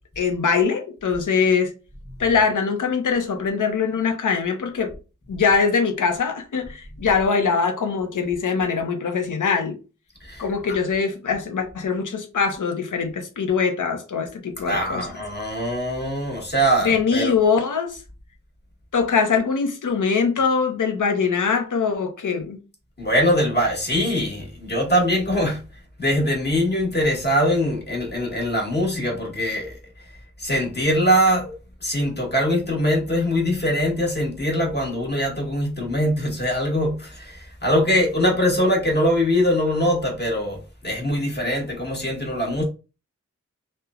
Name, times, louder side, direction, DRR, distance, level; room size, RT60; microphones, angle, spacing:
voice 1, 0.2-1.7 2.2-4.9 5.3-9.8 10.4-15.1 16.8-18.0 18.9-22.6, left 5 dB, 85° left, 0.5 m, -22 dB
voice 2, 14.6-17.3 23.0-25.6 26.0-29.8 30.4-31.5 31.8-42.6, equal, 35° left, 1.1 m, -22 dB
3.1 x 2.1 x 2.3 m
wide cardioid pair, 45°, 30 cm